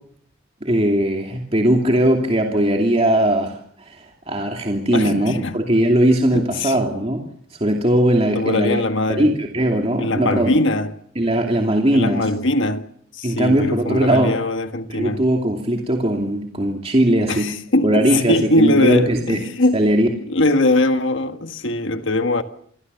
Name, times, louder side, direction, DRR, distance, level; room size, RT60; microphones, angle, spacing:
voice 1, 0.6-7.2 7.6-8.8 9.1-10.5 11.2-12.3 13.2-14.3 14.9-17.5 17.8-19.4 19.7-20.1, right 1 dB, 30° right, 2.7 m, -19 dB
voice 2, 4.9-5.6 6.3-6.8 8.3-9.3 10.0-10.9 11.9-15.2 17.3-19.9 20.3-22.4, left 2 dB, 60° left, 1.6 m, -21 dB
27.5 x 22.0 x 6.9 m
head